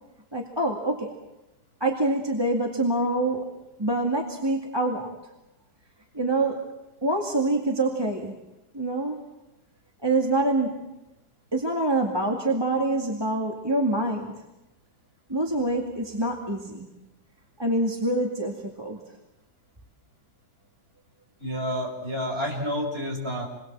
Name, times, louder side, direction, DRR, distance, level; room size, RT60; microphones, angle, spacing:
voice 1, 0.3-1.1 1.8-5.2 6.1-6.7 7.0-8.4 8.7-9.2 10.0-10.8 11.5-14.3 15.3-16.9 17.6-19.0, right 2 dB, 15° right, 0 dB, 2.2 m, -26 dB
voice 2, 21.4-23.5, equal, 35° right, -1 dB, 7.1 m, -29 dB
29.0 x 21.5 x 7.5 m, 0.96 s
omnidirectional pair, 1.7 m